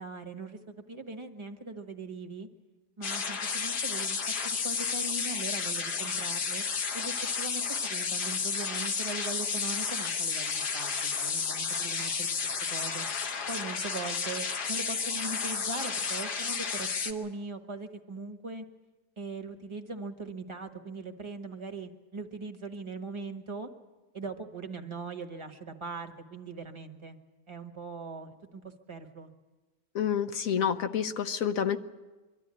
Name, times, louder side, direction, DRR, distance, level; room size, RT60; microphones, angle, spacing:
voice 1, 0.0-2.5 3.0-6.6 6.9-12.3 12.7-13.0 13.5-18.6 19.2-23.7 24.1-27.2 27.5-29.3, right 3 dB, 20° right, 5 dB, 1.3 m, -40 dB
sound 1, 3.0-17.1, left 5 dB, 80° left, 1.8 m, -32 dB
voice 2, 29.9-31.8, left 8 dB, 60° left, 9 dB, 1.2 m, -28 dB
24.0 x 13.0 x 9.7 m, 1.2 s
omnidirectional pair, 1.7 m